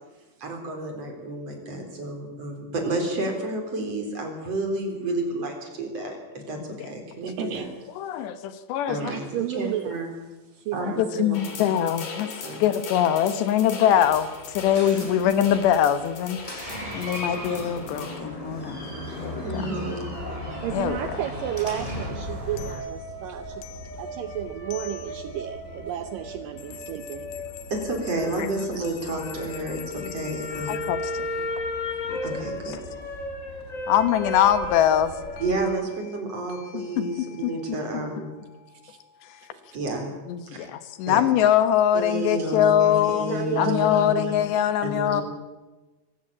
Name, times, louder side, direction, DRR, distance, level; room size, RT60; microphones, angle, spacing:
voice 1, 0.4-7.7 8.9-10.1 10.7-11.4 11.7-11.8 12.4-12.6 19.3-20.1 27.7-30.8 32.2-32.8 35.4-38.4 39.7-40.1 40.5-40.7 41.1-41.2 41.9-44.3 44.8-45.2, right 1 dB, 35° right, 4.8 m, -30 dB
voice 2, 7.2-7.7 9.0-10.0 10.5-11.3 20.6-23.7 24.0-27.3 38.8-39.0 39.4-39.5 43.3-44.2 44.5-44.7 45.1-45.2, right 11 dB, 85° right, 1.9 m, -32 dB
voice 3, 8.0-9.2 10.9-16.4 16.9-18.9 19.2-19.7 20.7-21.2 28.4-28.5 29.8-30.3 30.7-31.6 32.1-32.2 32.7-32.8 33.9-35.2 36.5-38.0 39.2-39.5 40.3-45.2, left 10 dB, 75° left, 3.3 m, -23 dB
sound 1, 11.3-18.2, left 5 dB, 55° left, 4.3 m, -39 dB
Door, 14.0-22.7, equal, 5° left, 7.8 m, -36 dB
sound 2, 20.1-35.7, left 1 dB, 25° left, 2.2 m, -36 dB
23.5 x 16.0 x 8.7 m
omnidirectional pair, 5.1 m